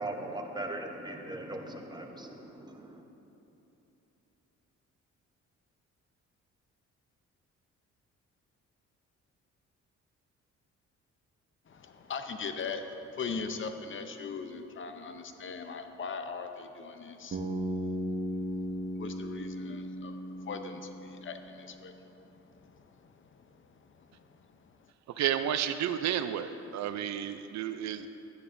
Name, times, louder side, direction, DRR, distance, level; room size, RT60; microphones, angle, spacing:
voice 1, 0.0-3.0, right 1 dB, 15° right, 3 dB, 0.9 m, -39 dB
voice 2, 11.7-17.4 19.0-24.9, left 5 dB, 40° left, 7 dB, 0.6 m, -41 dB
Bass guitar, 17.3-21.3, equal, 40° right, 1.2 m, -36 dB
voice 3, 25.2-28.1, right 10 dB, 65° right, 10 dB, 0.5 m, -31 dB
11.5 x 9.6 x 2.6 m, 3.0 s
cardioid pair, 90°, 30 cm